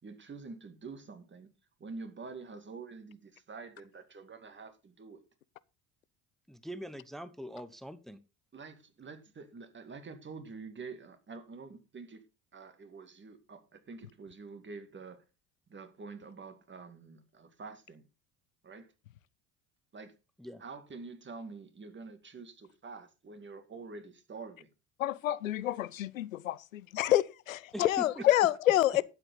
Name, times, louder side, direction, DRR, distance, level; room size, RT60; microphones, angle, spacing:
voice 1, 0.0-1.5 1.8-5.3 8.5-12.2 12.5-15.3 15.7-18.1 18.6-18.9 19.9-20.1 20.6-24.7 28.2-28.3, right 4 dB, 30° right, 2.4 m, -47 dB
voice 2, 6.5-8.2 20.4-20.6 27.7-28.2, equal, ahead, 1.1 m, -43 dB
voice 3, 25.0-29.0, left 13 dB, 90° left, 0.6 m, -28 dB
12.0 x 8.1 x 4.0 m
hypercardioid pair, 65°, 39 cm